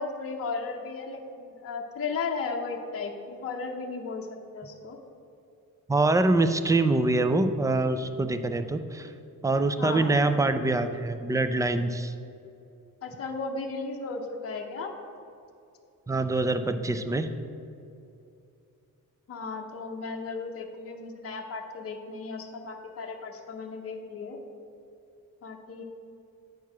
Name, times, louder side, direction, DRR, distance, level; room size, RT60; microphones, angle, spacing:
voice 1, 0.0-4.3 4.5-5.0 9.8-10.2 13.0-14.9 19.3-24.4 25.4-25.8, left 4 dB, 40° left, 1 dB, 0.7 m, -35 dB
voice 2, 5.9-9.1 9.4-12.1 16.1-17.3, right 2 dB, 10° right, 9 dB, 0.3 m, -25 dB
9.3 x 4.6 x 5.9 m, 2.6 s
wide cardioid pair, 130°, 37 cm